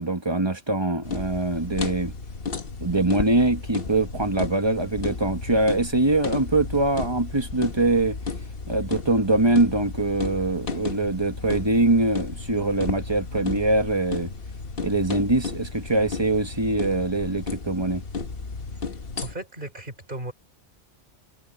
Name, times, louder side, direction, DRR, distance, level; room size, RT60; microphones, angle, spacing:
voice 1, 0.0-2.1 2.8-8.2 8.7-14.3 14.8-18.0, right 2 dB, 20° right, 1.9 m, -23 dB
sound 1, 1.0-19.4, left 4 dB, 55° left, 1.4 m, -33 dB
voice 2, 19.2-20.3, right 2 dB, 45° right, 4.0 m, -35 dB
omnidirectional pair, 1.2 m